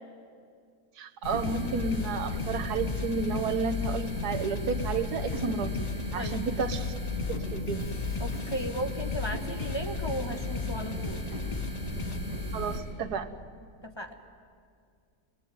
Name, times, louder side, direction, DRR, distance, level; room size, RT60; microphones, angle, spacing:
voice 1, 1.0-5.9 6.1-7.0 7.3-8.0 12.5-13.3, right 4 dB, 85° right, 8 dB, 1.6 m, -32 dB
sound 1, 1.2-12.8, left 1 dB, 80° left, 4.5 m, -35 dB
sound 2, 1.4-12.2, left 8 dB, 55° left, 0.4 m, -38 dB
voice 2, 8.2-11.2 13.8-14.1, equal, 20° left, 2 dB, 1.3 m, -36 dB
24.0 x 21.0 x 9.3 m, 2.2 s
omnidirectional pair, 1.6 m